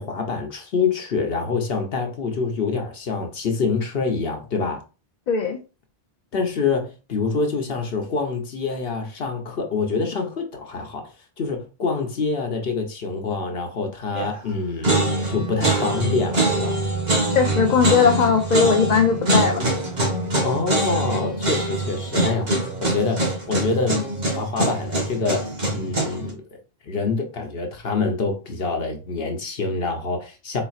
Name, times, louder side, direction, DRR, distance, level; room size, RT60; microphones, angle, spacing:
voice 1, 0.0-4.8 6.3-11.1 11.4-14.9 15.3-16.8 20.4-24.1 24.3-26.4 26.8-30.6, left 4 dB, 65° left, 1.0 m, -26 dB
voice 2, 5.3-5.6 17.3-19.7, left 5 dB, 50° left, 0.6 m, -19 dB
sound 1, 14.1-14.5 14.8-26.3, right 2 dB, 45° right, 1.3 m, -24 dB
4.2 x 3.8 x 2.4 m
omnidirectional pair, 1.1 m